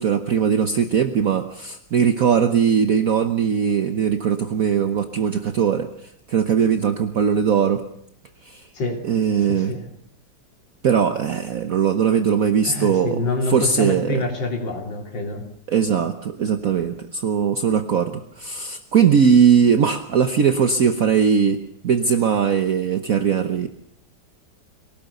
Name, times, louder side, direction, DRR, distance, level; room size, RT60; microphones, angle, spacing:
voice 1, 0.0-7.8 8.4-8.7 9.0-9.7 10.8-13.2 13.5-14.2 15.7-23.7, right 7 dB, 55° right, 8 dB, 1.3 m, -20 dB
voice 2, 8.7-9.1 9.4-9.9 12.6-15.5, left 2 dB, 80° left, 3 dB, 3.8 m, -27 dB
23.5 x 18.5 x 6.8 m, 0.69 s
omnidirectional pair, 2.0 m